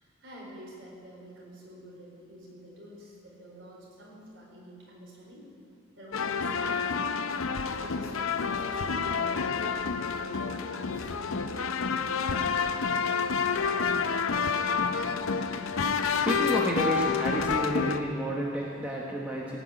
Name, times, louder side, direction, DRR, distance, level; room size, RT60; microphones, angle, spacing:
voice 1, 0.2-5.4 6.0-7.1 7.8-11.7, equal, 55° right, -4 dB, 4.3 m, -48 dB
sound 1, 6.1-18.0, left 5 dB, 70° left, 0.6 m, -29 dB
voice 2, 13.7-19.6, equal, 5° right, -4 dB, 1.1 m, -33 dB
17.5 x 6.1 x 8.8 m, 2.5 s
head